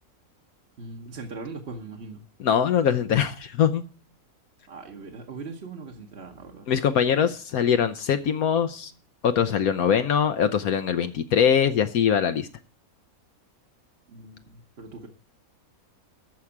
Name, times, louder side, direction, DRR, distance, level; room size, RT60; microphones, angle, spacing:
voice 1, 0.8-2.2 4.7-6.7 14.1-15.1, right 3 dB, 50° right, 2 dB, 1.3 m, -40 dB
voice 2, 2.4-3.8 6.7-8.9 9.2-12.5, left 8 dB, 75° left, 9 dB, 1.2 m, -22 dB
14.0 x 4.8 x 8.6 m, 0.40 s
omnidirectional pair, 1.5 m